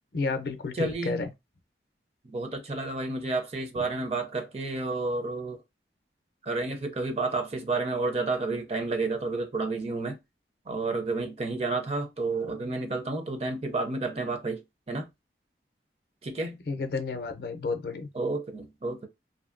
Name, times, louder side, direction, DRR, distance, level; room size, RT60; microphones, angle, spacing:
voice 1, 0.1-1.3 16.7-18.1, left 3 dB, 55° left, 0.5 m, -31 dB
voice 2, 0.7-1.2 2.3-5.6 6.4-10.2 10.7-14.6 14.9-15.1 16.2-16.6 18.1-19.1, right 3 dB, 35° right, 0.5 m, -30 dB
2.7 x 2.6 x 2.5 m
head